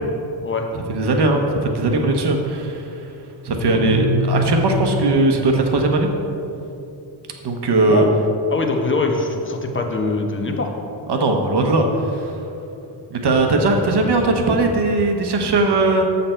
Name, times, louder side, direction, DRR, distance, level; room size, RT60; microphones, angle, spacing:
voice 1, 0.9-2.9 3.4-6.1 7.4-8.0 11.1-12.3 13.1-16.0, right 2 dB, 60° right, 3 dB, 1.1 m, -19 dB
sound 1, 3.5-6.3, left 1 dB, 80° left, 0.9 m, -25 dB
voice 2, 7.8-8.2 8.5-10.7 13.8-14.2, left 3 dB, 25° left, 3 dB, 0.9 m, -23 dB
7.5 x 6.8 x 4.4 m, 2.8 s
wide cardioid pair, 120°, 46 cm